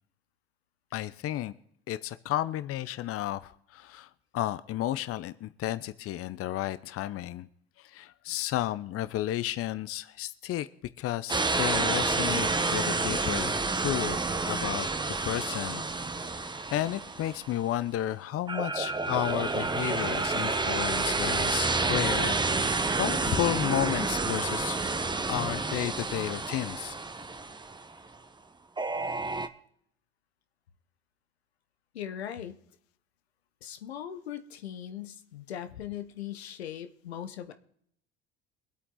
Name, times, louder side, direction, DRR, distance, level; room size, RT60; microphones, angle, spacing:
voice 1, 0.9-1.5 1.9-7.5 7.8-10.7 11.0-14.2 14.5-14.9 15.2-15.8 16.3-22.7 23.0-24.9 25.3-27.0, left 13 dB, 45° left, 15 dB, 0.8 m, -32 dB
sound 1, 11.3-17.7 18.5-27.8 28.8-29.5, right 3 dB, 15° right, 1.1 m, -29 dB
voice 2, 31.9-32.6 33.6-37.5, left 10 dB, 90° left, 9 dB, 1.0 m, -39 dB
23.5 x 8.5 x 3.8 m, 0.68 s
hypercardioid pair, 70°, 31 cm